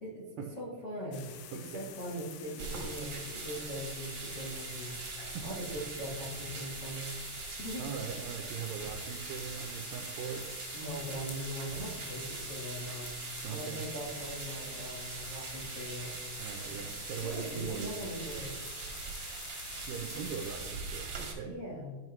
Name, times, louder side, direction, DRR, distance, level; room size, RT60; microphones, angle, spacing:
voice 1, 0.6-4.9 5.4-7.8 8.8-9.0 10.7-13.1 13.5-16.1 17.2-18.7 21.4-22.0, equal, 60° left, -6 dB, 1.1 m, -41 dB
sound 1, 1.1-20.7, left 8 dB, 80° left, 2.2 m, -49 dB
voice 2, 1.5-1.9 5.2-5.6 7.8-10.6 13.4-13.9 16.4-18.0 19.9-21.6, right 7 dB, 85° right, 3 dB, 2.0 m, -40 dB
sound 2, 2.6-21.3, right 4 dB, 55° right, 1.3 m, -42 dB
12.5 x 5.7 x 3.1 m, 1.5 s
omnidirectional pair, 4.6 m